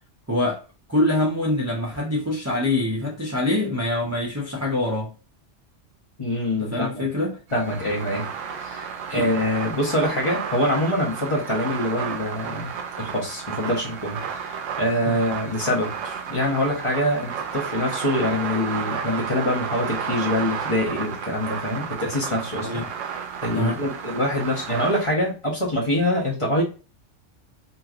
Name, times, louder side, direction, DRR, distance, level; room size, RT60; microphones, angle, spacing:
voice 1, 0.3-0.6 0.9-5.1 6.6-7.4 9.1-9.3 15.0-15.2 22.6-22.9 23.5-23.8, left 1 dB, 20° right, 0.4 m, -24 dB
voice 2, 6.2-7.0 7.5-8.3 8.6-12.7 13.0-22.8 23.4-26.6, left 1 dB, 30° left, 0.8 m, -25 dB
sound 1, 7.5-25.1, right 7 dB, 80° right, 0.9 m, -32 dB
3.0 x 2.7 x 2.4 m
omnidirectional pair, 1.3 m